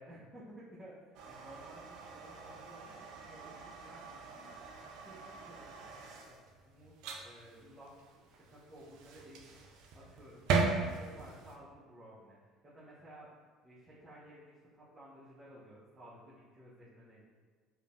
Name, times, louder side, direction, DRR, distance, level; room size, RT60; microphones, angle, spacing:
voice 1, 0.0-4.5 5.0-6.4 6.6-10.5 11.0-13.3 13.6-17.3, right 1 dB, 25° right, -9 dB, 1.1 m, -55 dB
sound 1, 1.1-11.5, right 4 dB, 65° right, 0.5 m, -39 dB
4.9 x 2.8 x 2.7 m, 1.6 s
hypercardioid pair, 70°, 0 cm